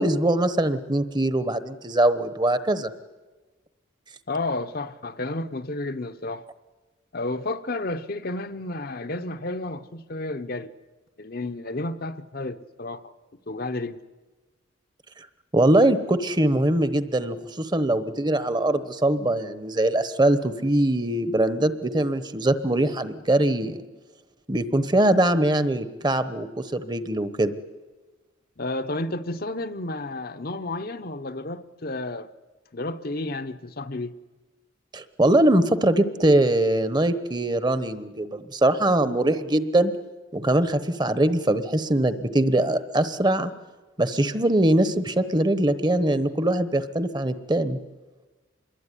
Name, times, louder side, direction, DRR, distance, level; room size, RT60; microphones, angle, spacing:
voice 1, 0.0-2.9 15.5-23.8 24.5-27.5 34.9-39.9 40.3-43.5 44.0-47.8, right 1 dB, 20° right, 13 dB, 1.0 m, -22 dB
voice 2, 4.3-6.4 7.1-10.7 11.2-13.1 13.5-14.0 28.6-32.3 32.7-34.1, left 2 dB, 45° left, 9 dB, 0.9 m, -31 dB
26.0 x 22.0 x 9.9 m, 1.3 s
head